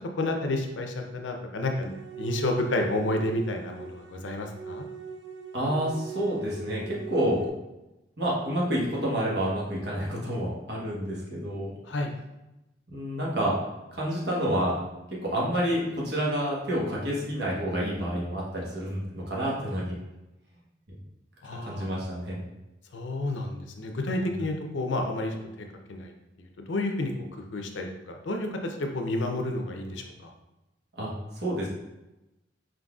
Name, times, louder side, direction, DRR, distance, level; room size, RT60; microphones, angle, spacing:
voice 1, 0.1-1.9 2.2-4.9 11.9-12.1 21.4-21.9 22.9-26.1 26.7-27.1 27.5-30.3, left 2 dB, 85° left, 3 dB, 0.6 m, -30 dB
sound 1, 1.7-7.5, right 7 dB, 80° right, 0.5 m, -40 dB
voice 2, 5.5-7.4 8.2-11.7 12.9-13.6 13.9-19.9 21.6-22.4 24.1-24.3 31.0-31.7, right 1 dB, 65° right, -4 dB, 1.2 m, -29 dB
4.5 x 3.9 x 2.4 m, 0.98 s
head